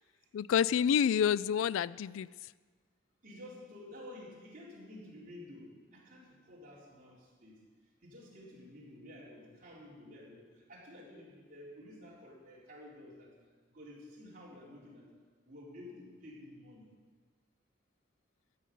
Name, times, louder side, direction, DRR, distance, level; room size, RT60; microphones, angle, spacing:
voice 1, 0.3-2.5, left 8 dB, 90° left, 20 dB, 0.3 m, -29 dB
voice 2, 3.2-7.6 8.0-13.3 13.7-15.1 15.5-16.9, left 1 dB, 45° right, -6 dB, 4.1 m, -51 dB
14.0 x 6.6 x 9.3 m, 1.5 s
head